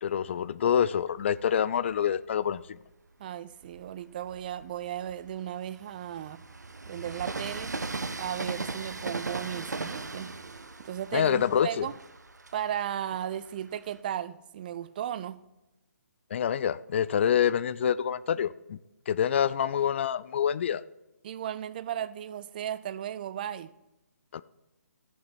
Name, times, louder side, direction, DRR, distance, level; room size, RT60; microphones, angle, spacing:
voice 1, 0.0-2.8 11.1-11.9 16.3-18.8 19.1-20.8 24.3-24.4, left 8 dB, 45° left, 0.3 m, -26 dB
Train, 1.1-2.8 3.4-14.0, right 3 dB, 85° right, 0.7 m, -39 dB
voice 2, 3.2-6.4 6.9-7.8 8.2-10.3 10.8-12.0 12.5-15.4 21.2-23.7, right 10 dB, 30° right, 0.3 m, -35 dB
14.5 x 5.7 x 4.3 m
figure-of-eight pair, 140°, 9 cm